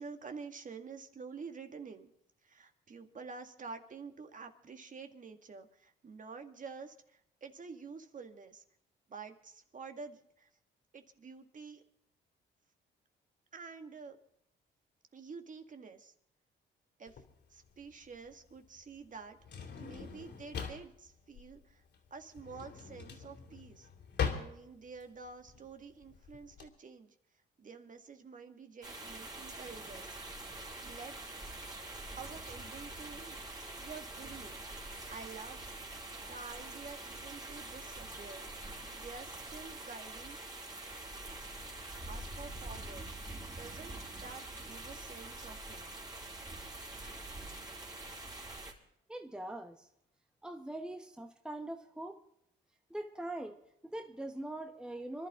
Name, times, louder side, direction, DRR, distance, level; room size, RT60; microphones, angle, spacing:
voice 1, 0.0-2.1 2.4-8.6 9.1-10.5 10.9-11.8 13.5-14.2 15.1-16.1 17.0-17.2 17.5-19.4 19.8-21.8 22.1-23.9 24.2-27.2 27.6-30.2 30.8-31.2 32.2-33.4 33.8-34.6 35.1-35.7 36.3-38.5 38.9-40.4 42.1-43.1 43.6-45.9, right 5 dB, 40° right, 6 dB, 2.0 m, -49 dB
Drawer open or close, 17.1-26.7, left 6 dB, 60° left, 3.1 m, -42 dB
sound 1, 28.8-48.7, right 2 dB, 20° right, 4.0 m, -45 dB
voice 2, 49.1-49.9 50.4-52.2 52.9-55.3, right 1 dB, 5° right, 5 dB, 1.3 m, -42 dB
25.5 x 12.0 x 3.8 m, 0.72 s
cardioid pair, 90°, 20 cm